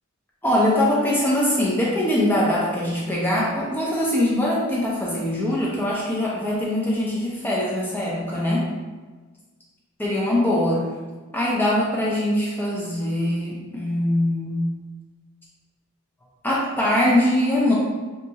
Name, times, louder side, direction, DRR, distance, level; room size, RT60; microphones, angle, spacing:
voice 1, 0.4-8.7 10.0-10.9 11.3-14.7 16.4-17.7, left 1 dB, 10° left, -5 dB, 0.4 m, -22 dB
2.8 x 2.4 x 2.7 m, 1.3 s
head